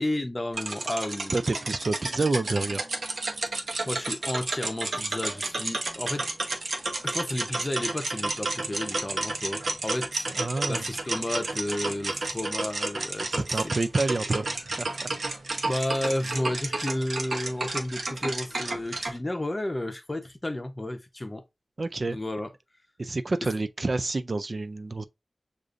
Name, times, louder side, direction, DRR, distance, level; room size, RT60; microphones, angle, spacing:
voice 1, 0.0-1.4 3.9-6.3 7.0-10.3 10.7-13.7 15.6-21.4 22.1-22.5, left 1 dB, 25° left, 0.7 m, -32 dB
sound 1, 0.5-19.2, right 2 dB, 70° right, 0.8 m, -31 dB
voice 2, 1.3-2.8 10.3-10.8 13.2-15.2 21.8-22.2 23.0-25.0, right 3 dB, 55° right, 0.3 m, -28 dB
6.5 x 2.5 x 2.5 m
wide cardioid pair, 80°, 0 cm